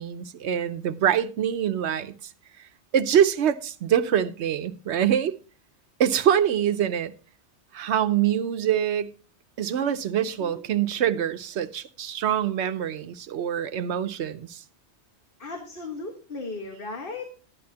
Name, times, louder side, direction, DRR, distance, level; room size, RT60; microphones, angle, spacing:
voice 1, 0.0-2.1 2.9-5.4 6.0-7.1 7.7-9.1 9.6-14.6, right 9 dB, 80° right, 1.0 m, -24 dB
voice 2, 10.2-10.6 15.4-17.3, left 3 dB, 55° left, 1.7 m, -36 dB
12.5 x 10.5 x 2.8 m
omnidirectional pair, 1.1 m